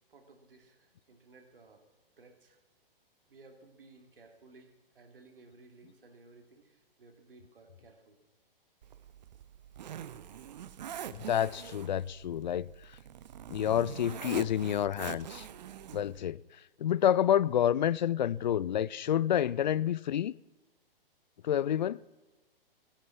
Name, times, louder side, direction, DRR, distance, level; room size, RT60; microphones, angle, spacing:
voice 1, 0.1-1.8 2.2-2.6 3.3-8.2, right 3 dB, 65° right, 2.8 m, -57 dB
Zipper (clothing), 8.8-16.2, right 10 dB, 45° right, 0.8 m, -45 dB
voice 2, 11.1-12.7 13.5-15.5 15.9-16.4 16.8-20.3 21.4-22.0, left 10 dB, 50° left, 0.4 m, -28 dB
18.0 x 10.5 x 5.9 m
figure-of-eight pair, 120°, 29 cm